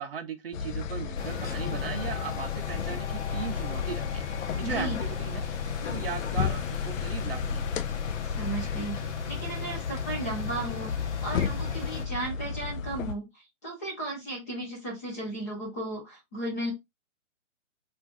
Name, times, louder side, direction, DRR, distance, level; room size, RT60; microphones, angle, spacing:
voice 1, 0.0-5.5 5.9-7.7, right 6 dB, 50° right, 0.4 m, -37 dB
sound 1, 0.5-13.1, left 6 dB, 85° left, 0.6 m, -33 dB
sound 2, 1.2-12.0, left 7 dB, 60° left, 0.9 m, -37 dB
voice 2, 4.6-5.0 8.4-13.3 13.6-16.7, right 2 dB, 15° left, 0.5 m, -35 dB
2.5 x 2.4 x 3.6 m
hypercardioid pair, 160°, 38 cm